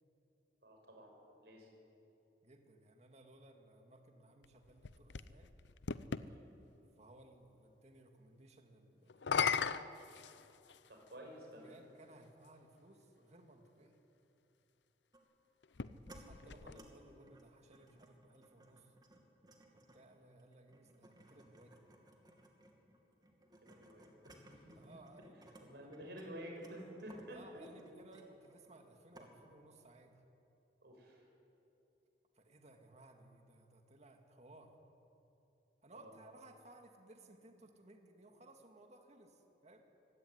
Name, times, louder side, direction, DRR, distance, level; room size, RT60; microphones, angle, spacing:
voice 1, 0.6-1.1 1.4-1.7 6.2-6.4 10.9-11.8 16.4-16.8 23.6-24.9 25.6-27.4 30.8-31.3 35.9-36.1, equal, 65° right, 0 dB, 6.8 m, -51 dB
voice 2, 2.4-5.5 7.0-9.7 11.6-14.0 16.0-18.9 19.7-21.8 24.8-25.9 27.3-30.2 32.3-34.7 35.8-39.8, right 2 dB, 40° right, 4 dB, 2.3 m, -60 dB
sound 1, 4.4-6.3 9.1-10.9 11.8-11.9 15.6-17.2, left 6 dB, 90° left, 0.7 m, -38 dB
sound 2, 15.1-15.3 15.8-16.2 16.6-16.9 17.2-25.6 25.9-28.8 29.1-29.3, right 1 dB, 25° right, 2.6 m, -62 dB
24.5 x 17.0 x 9.7 m, 3.0 s
head